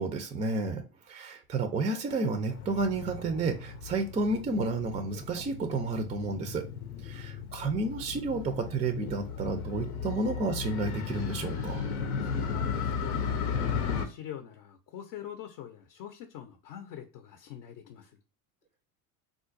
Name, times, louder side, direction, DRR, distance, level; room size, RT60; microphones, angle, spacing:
voice 1, 0.0-6.7 7.0-11.8, right 3 dB, 20° right, 0.3 m, -31 dB
Motorcycle, 2.5-14.0, left 6 dB, 90° left, 0.8 m, -35 dB
voice 2, 6.8-7.3 11.9-13.2 13.7-18.2, left 10 dB, 55° left, 0.6 m, -45 dB
3.7 x 2.4 x 2.4 m
hypercardioid pair, 90°, 43 cm